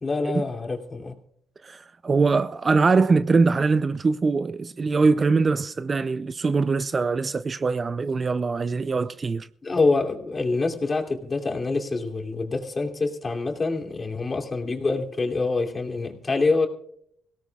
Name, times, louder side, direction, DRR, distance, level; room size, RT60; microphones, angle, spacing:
voice 1, 0.0-1.1 9.6-16.7, left 3 dB, 30° left, 2.8 m, -26 dB
voice 2, 1.6-9.5, right 4 dB, 35° right, 0.5 m, -22 dB
25.5 x 17.5 x 2.4 m
cardioid pair, 90°, 0 cm